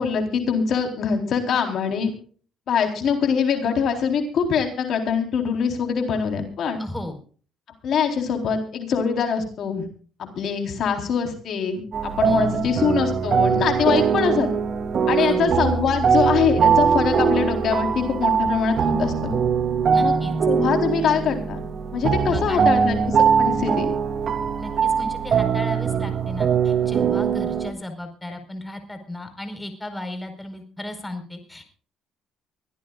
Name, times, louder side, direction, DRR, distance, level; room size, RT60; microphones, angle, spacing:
voice 1, 0.0-2.1 2.7-6.8 7.8-9.9 10.2-14.5 15.1-19.3 20.0-20.1 20.5-21.6 21.9-23.9, left 6 dB, 60° left, 4 dB, 4.0 m, -23 dB
voice 2, 6.8-7.2 12.2-12.5 15.2-15.5 19.9-20.3 22.2-22.7 24.6-31.6, left 1 dB, 10° left, 6 dB, 4.7 m, -35 dB
sound 1, 11.9-27.7, right 6 dB, 50° right, 2.7 m, -21 dB
24.5 x 16.0 x 2.5 m, 0.42 s
cardioid pair, 105°, 0 cm